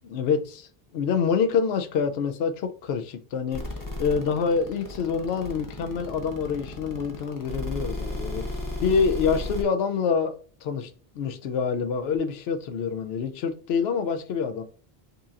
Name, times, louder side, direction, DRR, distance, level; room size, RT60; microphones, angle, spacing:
voice 1, 0.0-3.6 4.0-8.4 8.8-10.9 11.2-14.6, left 6 dB, 80° left, 0.8 m, -26 dB
sound 1, 3.5-9.6, left 2 dB, 20° left, 0.8 m, -33 dB
6.6 x 2.8 x 2.4 m
omnidirectional pair, 1.0 m